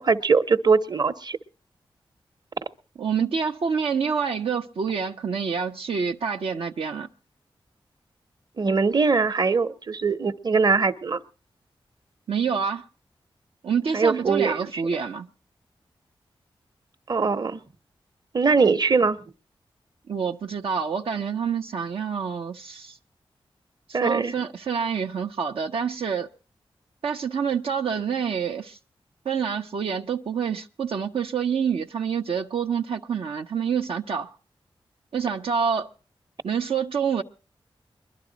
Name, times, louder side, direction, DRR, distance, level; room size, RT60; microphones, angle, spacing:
voice 1, 0.0-1.4 8.6-11.2 13.9-14.8 17.1-17.6 18.3-19.2 23.9-24.3, right 4 dB, 45° right, 0.9 m, -22 dB
voice 2, 3.0-7.1 12.3-12.9 13.6-15.3 20.1-23.0 23.9-26.3 27.0-28.8 29.2-34.3 35.1-35.9 36.4-37.2, right 6 dB, 80° right, 0.7 m, -27 dB
21.5 x 12.0 x 3.9 m
wide cardioid pair, 75°, 9 cm